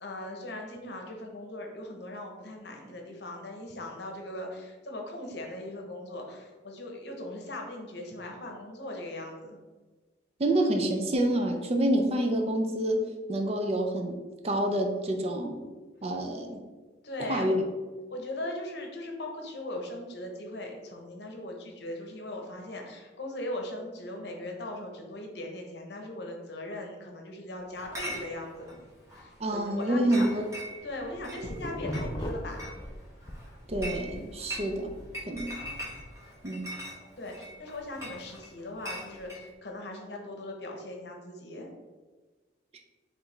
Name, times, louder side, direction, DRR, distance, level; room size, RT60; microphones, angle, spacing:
voice 1, 0.0-9.6 17.0-17.6 18.1-28.7 29.1-30.3 30.8-32.7 35.4-35.7 37.2-41.7, left 1 dB, 60° left, 2 dB, 0.8 m, -39 dB
voice 2, 10.4-13.0 13.3-14.2 14.4-15.6 16.0-16.6 17.3-17.6 29.4-30.4 33.7-34.9 35.3-35.5 36.4-36.7, right 1 dB, 35° right, 3 dB, 0.4 m, -27 dB
Chatter / Chink clink, 27.8-39.5, equal, 15° right, 0.9 m, -43 dB
sound 1, 31.0-33.4 33.7-36.1, equal, 25° left, 0.5 m, -38 dB
4.6 x 3.3 x 3.2 m, 1.3 s
head